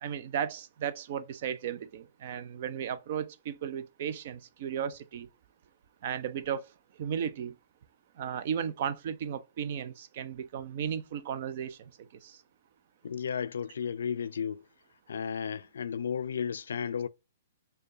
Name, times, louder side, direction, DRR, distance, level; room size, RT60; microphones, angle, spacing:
voice 1, 0.0-5.3 6.0-6.6 7.0-7.5 8.2-11.8 12.2-12.3, right 8 dB, 55° right, 0.5 m, -35 dB
voice 2, 13.0-14.6 15.1-17.1, left 7 dB, 75° left, 0.3 m, -33 dB
6.4 x 2.2 x 2.7 m
hypercardioid pair, 125°, 0 cm